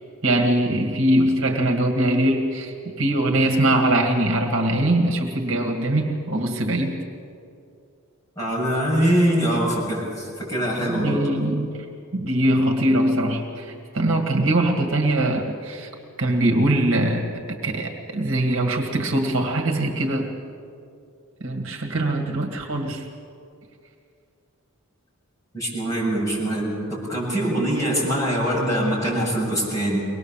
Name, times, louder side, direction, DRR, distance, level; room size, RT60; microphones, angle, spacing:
voice 1, 0.2-7.0 10.8-11.7 12.1-15.9 16.2-20.3 21.4-23.1, right 1 dB, 60° right, 2 dB, 1.9 m, -22 dB
voice 2, 8.4-11.2 25.5-30.1, right 1 dB, 15° left, -5 dB, 7.4 m, -23 dB
23.5 x 19.5 x 7.4 m, 2.4 s
head